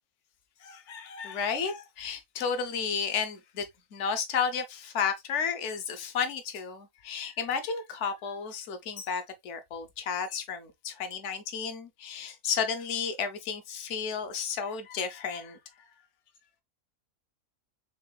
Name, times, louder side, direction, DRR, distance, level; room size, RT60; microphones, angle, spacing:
voice 1, 0.6-3.7 3.9-15.6, left 6 dB, 65° left, 1.0 m, -32 dB
6.4 x 2.4 x 2.2 m
omnidirectional pair, 1.4 m